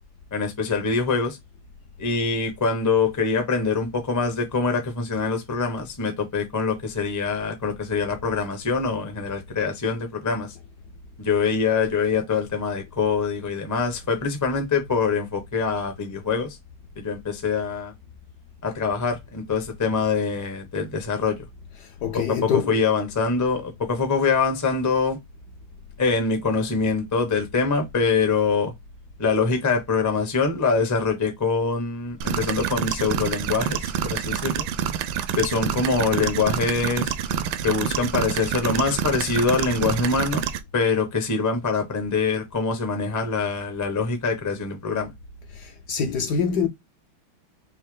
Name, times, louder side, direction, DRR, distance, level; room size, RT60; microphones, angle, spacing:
voice 1, 0.3-1.4 2.0-10.5 11.2-16.6 17.0-17.9 18.6-21.4 22.1-25.2 26.0-28.7 29.2-34.7 35.3-37.1 37.6-40.4 40.7-45.1, left 4 dB, 20° left, 0.4 m, -24 dB
voice 2, 21.7-22.9 45.5-46.7, left 6 dB, 65° left, 1.1 m, -26 dB
sound 1, 32.2-40.6, right 9 dB, 75° right, 1.3 m, -27 dB
5.4 x 2.1 x 3.3 m
omnidirectional pair, 2.3 m